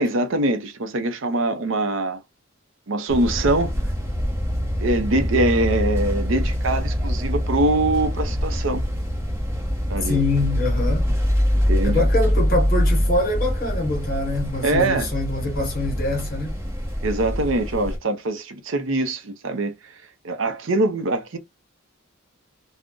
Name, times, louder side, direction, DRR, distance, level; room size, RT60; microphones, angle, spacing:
voice 1, 0.0-2.2 2.9-3.7 4.8-8.8 9.9-10.2 11.7-12.0 14.6-15.1 17.0-19.9 20.2-21.4, right 2 dB, 60° right, 0.6 m, -23 dB
sound 1, 3.1-18.0, equal, 15° right, 0.8 m, -24 dB
voice 2, 10.0-11.1 11.8-16.5, left 2 dB, 45° left, 1.1 m, -24 dB
2.5 x 2.1 x 3.5 m
head